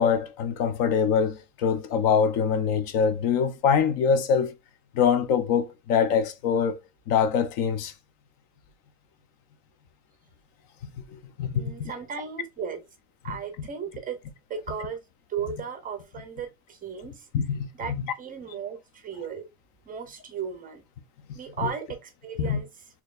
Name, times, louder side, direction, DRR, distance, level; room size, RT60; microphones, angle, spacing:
voice 1, 0.0-4.5 4.9-6.8 7.1-7.9 11.1-11.9 13.3-13.4 17.3-17.7 21.6-21.7 22.4-22.6, left 7 dB, 60° left, 0.6 m, -24 dB
voice 2, 11.5-12.8 13.2-14.2 14.5-15.0 15.3-17.3 17.7-19.5 19.9-20.8 21.3-22.7, right 7 dB, 20° right, 0.5 m, -35 dB
4.2 x 2.8 x 2.3 m
cardioid pair, 175°, 40 cm